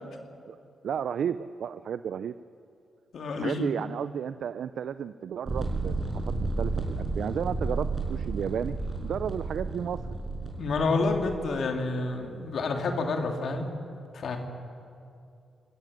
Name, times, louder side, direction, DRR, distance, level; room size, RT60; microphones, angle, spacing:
voice 1, 0.8-2.4 3.4-6.0 6.2-8.8 9.0-10.2, right 8 dB, 70° right, 13 dB, 0.5 m, -33 dB
voice 2, 3.1-3.7 10.6-13.7 14.1-14.4, left 3 dB, 65° left, 3 dB, 2.9 m, -29 dB
sound 1, 5.5-11.4, right 3 dB, 35° right, 5.8 m, -32 dB
26.5 x 14.5 x 9.6 m, 2.5 s
supercardioid pair, 55°, 0 cm